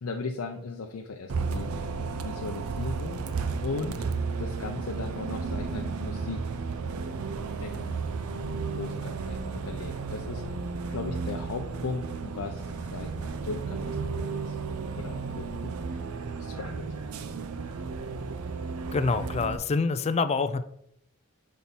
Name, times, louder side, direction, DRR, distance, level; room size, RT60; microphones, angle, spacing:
voice 1, 0.0-1.9 2.2-3.2 3.6-4.0 4.4-6.5 7.6-8.0 8.7-10.6 10.9-14.6 15.0-16.0 16.4-16.9, left 4 dB, 80° left, 3 dB, 0.5 m, -37 dB
Bus, 1.3-19.6, right 4 dB, 80° right, 0.5 m, -33 dB
voice 2, 18.9-20.6, left 4 dB, 30° left, 11 dB, 0.3 m, -26 dB
4.5 x 4.1 x 5.4 m, 0.73 s
head